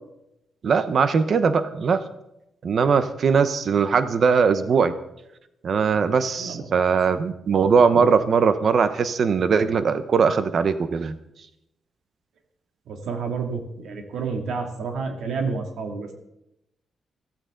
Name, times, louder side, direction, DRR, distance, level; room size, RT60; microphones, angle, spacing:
voice 1, 0.6-2.0 2.6-4.9 5.6-11.1, right 5 dB, 45° right, 11 dB, 0.9 m, -20 dB
voice 2, 12.9-16.1, right 4 dB, 85° right, 3 dB, 2.4 m, -30 dB
15.0 x 15.0 x 3.9 m, 0.85 s
wide cardioid pair, 170°, 0 cm